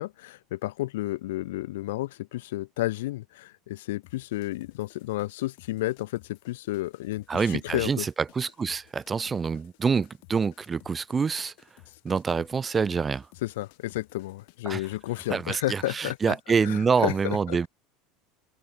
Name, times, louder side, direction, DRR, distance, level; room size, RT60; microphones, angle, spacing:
voice 1, 0.0-8.1 13.4-16.4 16.6-17.7, left 17 dB, 85° left, 1.2 m, -32 dB
sound 1, 4.0-16.4, left 34 dB, 70° left, 5.0 m, -57 dB
voice 2, 7.3-11.5 12.0-13.2 14.7-14.8 15.3-17.7, right 5 dB, 20° right, 0.6 m, -26 dB
supercardioid pair, 120°, 0 cm